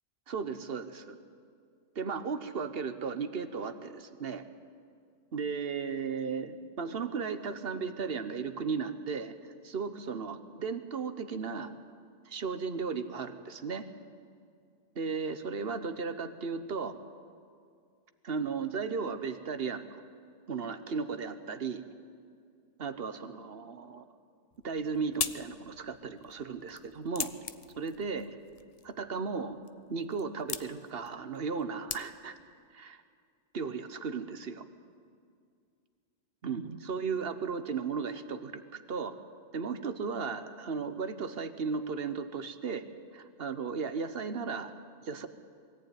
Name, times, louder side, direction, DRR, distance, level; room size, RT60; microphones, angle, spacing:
voice 1, 0.3-1.2 1.9-4.4 5.3-9.3 9.6-11.7 12.2-13.9 14.9-17.0 18.2-19.9 20.5-21.8 22.8-24.0 24.6-27.3 27.8-28.3 28.8-29.5 29.9-32.3 32.7-33.0 33.5-34.6 36.4-39.1 39.5-42.8 43.1-44.7 45.0-45.3, right 5 dB, 55° right, 10 dB, 1.2 m, -35 dB
sound 1, 24.5-32.5, left 6 dB, 40° left, 0.5 m, -42 dB
22.0 x 14.5 x 9.3 m, 2.2 s
omnidirectional pair, 1.2 m